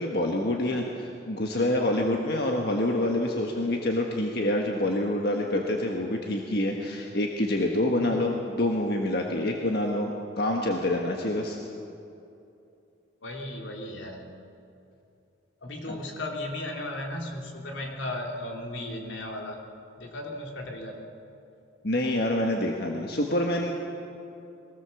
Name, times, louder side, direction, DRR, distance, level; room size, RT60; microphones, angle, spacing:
voice 1, 0.0-11.6 15.9-16.0 21.8-23.7, left 1 dB, 55° left, 1 dB, 1.5 m, -27 dB
voice 2, 13.2-14.4 15.6-19.6 20.0-21.0, left 1 dB, 80° left, 1 dB, 3.2 m, -36 dB
23.0 x 17.5 x 7.2 m, 2.7 s
head